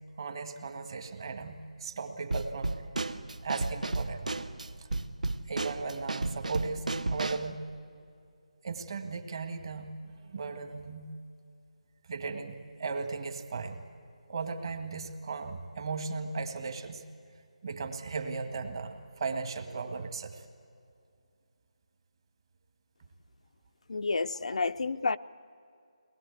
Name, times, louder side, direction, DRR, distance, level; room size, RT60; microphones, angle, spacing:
voice 1, 0.2-2.9 3.4-4.3 4.8-4.9 5.4-7.6 8.6-10.0 10.2-11.1 12.1-13.7 14.3-17.0 17.6-20.5, right 4 dB, 45° right, 6 dB, 1.7 m, -37 dB
Drum kit / Snare drum, 2.3-7.5, right 2 dB, 85° right, 0.9 m, -34 dB
voice 2, 23.9-25.2, left 4 dB, 65° left, 11 dB, 0.5 m, -30 dB
22.5 x 19.5 x 8.4 m, 2.4 s
figure-of-eight pair, 170°, 4 cm